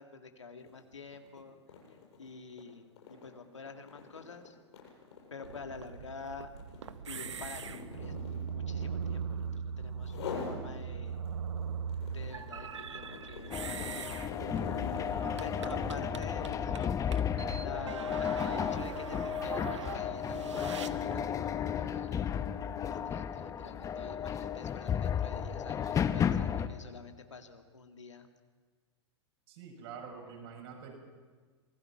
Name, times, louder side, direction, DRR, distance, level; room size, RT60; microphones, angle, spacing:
voice 1, 0.0-1.6 2.2-4.6 5.3-6.5 7.1-8.2 8.4-11.2 12.1-14.4 15.2-17.0 17.6-22.3 22.8-28.3, left 4 dB, 85° left, 5 dB, 2.0 m, -48 dB
sound 1, 0.6-0.8 1.1-9.6 10.0-10.6 11.1-16.2, left 5 dB, 65° left, 7.8 m, -44 dB
sound 2, 5.4-21.3, right 7 dB, 80° right, 0.9 m, -41 dB
sound 3, 13.5-26.7, left 8 dB, 20° left, 0.9 m, -33 dB
voice 2, 15.1-16.2 29.5-30.9, right 6 dB, 60° right, 0 dB, 7.1 m, -47 dB
27.0 x 19.5 x 5.9 m, 1.5 s
hypercardioid pair, 105°, 15 cm